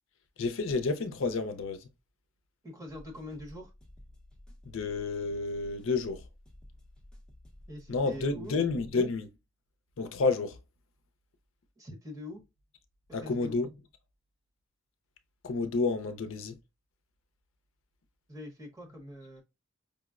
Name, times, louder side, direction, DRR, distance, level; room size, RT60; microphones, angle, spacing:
voice 1, 0.4-1.9 4.7-6.2 7.9-9.3 10.0-10.6 13.1-13.7 15.4-16.6, left 4 dB, 75° left, 0.5 m, -30 dB
voice 2, 2.6-3.7 7.7-8.6 11.8-12.4 13.2-13.6 18.3-19.4, left 1 dB, 15° right, 0.9 m, -43 dB
sound 1, 2.9-8.9, left 1 dB, 5° left, 0.6 m, -54 dB
5.1 x 2.0 x 2.3 m
head